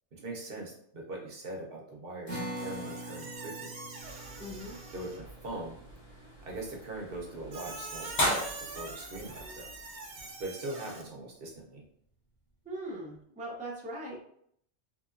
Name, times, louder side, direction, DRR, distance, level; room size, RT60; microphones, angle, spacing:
voice 1, 0.1-3.7 4.9-5.8 6.4-9.7 10.4-11.8, right 2 dB, 60° right, -1 dB, 0.9 m, -41 dB
sound 1, 2.3-8.9, right 1 dB, 30° left, 1.1 m, -45 dB
Squeak, 2.6-5.3 7.5-11.0, right 3 dB, 80° right, 1.1 m, -44 dB
sound 2, 4.0-10.5, left 1 dB, 65° left, 1.2 m, -38 dB
voice 2, 4.4-4.8 12.6-14.2, right 1 dB, 10° right, -4 dB, 0.5 m, -40 dB
3.0 x 2.8 x 2.4 m, 0.68 s
omnidirectional pair, 1.1 m